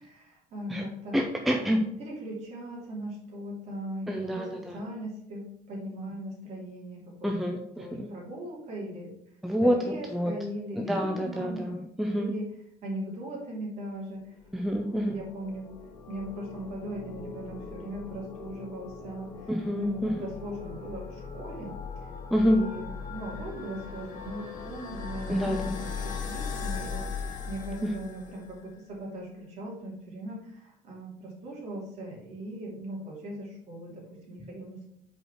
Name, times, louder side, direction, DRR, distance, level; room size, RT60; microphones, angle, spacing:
voice 1, 0.0-1.2 2.0-9.1 9.6-11.6 12.1-12.5 12.8-14.4 14.8-15.7 16.1-21.7 22.0-22.1 22.5-34.8, right 1 dB, 45° right, -3 dB, 2.7 m, -39 dB
voice 2, 1.1-1.8 4.1-4.8 7.2-8.1 9.4-9.8 10.1-10.3 10.8-12.3 14.5-15.2 19.5-20.3 22.3-22.6 25.3-25.8 27.8-27.9, equal, ahead, 2 dB, 0.4 m, -27 dB
sound 1, 14.5-28.6, left 5 dB, 55° left, 1.3 m, -39 dB
5.3 x 4.7 x 5.8 m, 0.76 s
cardioid pair, 175°, 16 cm